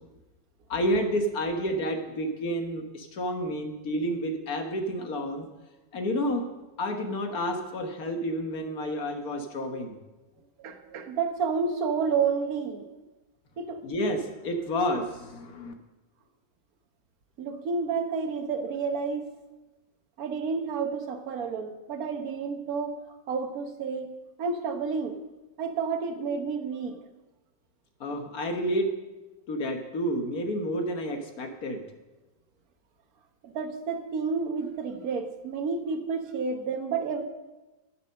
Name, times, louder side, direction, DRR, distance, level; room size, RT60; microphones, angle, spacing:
voice 1, 0.7-5.5 5.9-10.0 13.8-15.7 28.0-29.0 29.5-31.9, equal, 55° left, 5 dB, 1.6 m, -30 dB
voice 2, 10.6-12.9 13.6-13.8 17.4-19.3 20.2-23.0 23.3-25.2 25.6-27.0 33.4-37.2, right 5 dB, 55° right, 6 dB, 1.4 m, -30 dB
10.0 x 8.1 x 6.5 m, 1.1 s
omnidirectional pair, 2.1 m